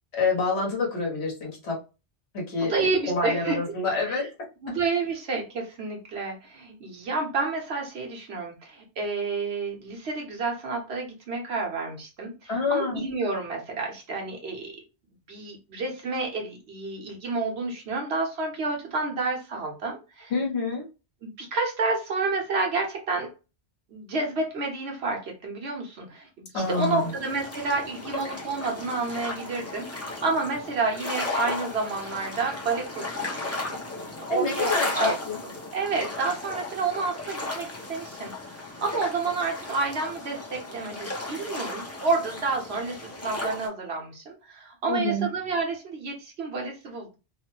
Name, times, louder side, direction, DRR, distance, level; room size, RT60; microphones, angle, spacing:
voice 1, 0.1-1.8 2.3-4.3 12.5-13.0 20.3-20.8 26.5-27.0 34.3-35.4 44.9-45.3, left 3 dB, 70° left, -2 dB, 1.4 m, -27 dB
voice 2, 2.6-3.6 4.1-4.3 4.6-14.7 15.3-20.3 21.2-23.3 23.9-33.8 34.3-34.7 34.9-35.1 35.7-43.0 43.2-47.2, right 3 dB, 70° right, 1 dB, 1.2 m, -30 dB
sound 1, 26.6-43.7, left 2 dB, 15° left, 0.6 m, -35 dB
3.3 x 2.1 x 3.0 m, 0.30 s
omnidirectional pair, 1.1 m